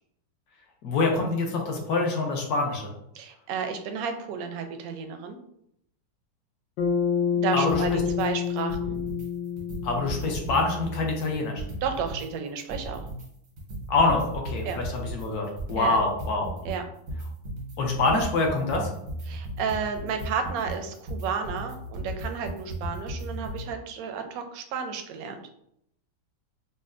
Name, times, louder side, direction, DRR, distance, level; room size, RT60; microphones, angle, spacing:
voice 1, 0.8-2.9 7.5-8.0 9.8-11.6 13.9-16.6 17.8-18.9, left 3 dB, 70° left, 1 dB, 1.2 m, -25 dB
voice 2, 3.1-5.4 7.3-9.0 11.8-13.1 14.6-14.8 15.8-16.0 16.6-16.8 19.3-25.4, right 6 dB, 70° right, 6 dB, 0.9 m, -32 dB
Bass guitar, 6.8-11.2, left 7 dB, 90° left, 1.3 m, -28 dB
sound 1, 7.7-8.3 8.6-9.3 9.6-12.3 12.6-23.7, right 1 dB, 90° right, 1.6 m, -36 dB
5.3 x 2.1 x 2.4 m, 0.74 s
omnidirectional pair, 1.8 m